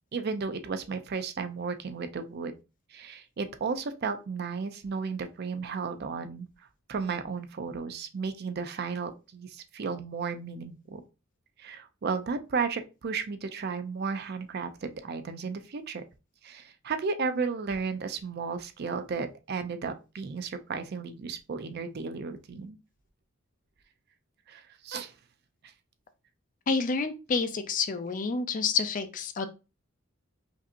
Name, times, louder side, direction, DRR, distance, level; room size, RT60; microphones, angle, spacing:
voice 1, 0.1-2.5 2.9-6.5 6.9-11.0 11.6-16.0 16.4-22.8 24.5-25.1, right 5 dB, 50° right, 0.4 m, -34 dB
voice 2, 26.7-29.5, left 5 dB, 40° left, 0.4 m, -28 dB
5.2 x 2.7 x 2.5 m
head